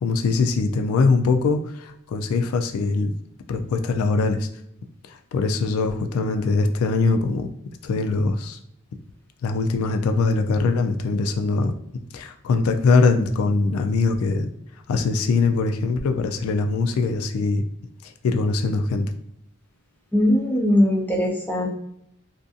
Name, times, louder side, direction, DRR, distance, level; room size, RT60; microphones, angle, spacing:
voice 1, 0.0-3.1 3.5-4.5 5.3-7.5 7.8-8.6 9.4-11.7 12.1-14.5 14.9-17.6 18.2-19.1, left 3 dB, 90° left, 7 dB, 0.3 m, -22 dB
voice 2, 20.1-21.7, left 1 dB, 10° left, -1 dB, 0.4 m, -20 dB
2.6 x 2.5 x 2.3 m, 0.76 s
head